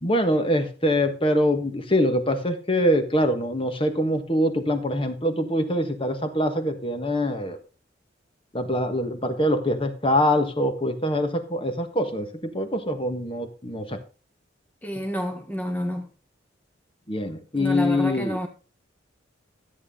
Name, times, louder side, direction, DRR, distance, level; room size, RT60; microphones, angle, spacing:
voice 1, 0.0-7.6 8.5-14.0 14.9-15.0 17.1-18.4, left 1 dB, 30° left, 1.5 m, -24 dB
voice 2, 14.8-16.1 17.5-18.5, equal, 10° left, 1.3 m, -29 dB
13.5 x 8.5 x 3.8 m
head